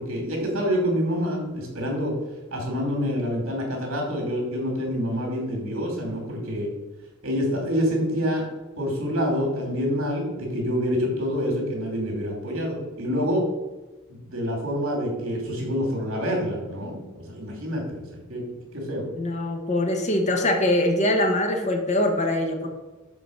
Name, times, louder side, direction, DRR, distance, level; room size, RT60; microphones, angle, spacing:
voice 1, 0.0-2.1 2.5-6.7 7.2-8.5 8.8-13.4 14.1-18.4 18.7-19.0, equal, 70° right, -1 dB, 2.6 m, -27 dB
voice 2, 19.2-22.7, left 1 dB, 35° left, 4 dB, 1.0 m, -23 dB
7.1 x 3.9 x 6.4 m, 1.2 s
head